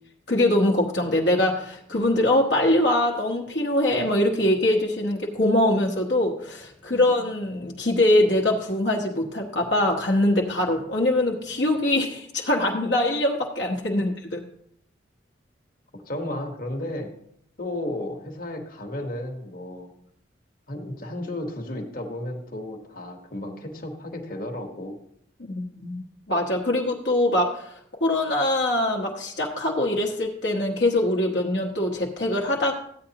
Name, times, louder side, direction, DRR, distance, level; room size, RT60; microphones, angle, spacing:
voice 1, 0.3-14.4 25.4-27.7 28.0-32.7, left 1 dB, 70° left, -1 dB, 1.2 m, -23 dB
voice 2, 15.9-17.1 17.6-19.9 20.7-25.0, left 1 dB, 50° left, 1 dB, 1.3 m, -33 dB
14.5 x 9.0 x 2.9 m, 0.69 s
head